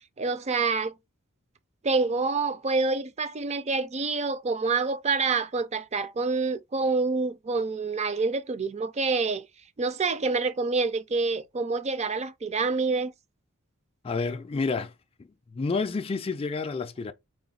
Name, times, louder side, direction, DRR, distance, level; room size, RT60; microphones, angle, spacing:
voice 1, 0.2-0.9 1.8-9.5 9.8-13.1, right 4 dB, 30° right, 0.5 m, -27 dB
voice 2, 14.0-14.9 15.5-17.1, left 4 dB, 25° left, 0.4 m, -29 dB
3.9 x 2.6 x 4.1 m
head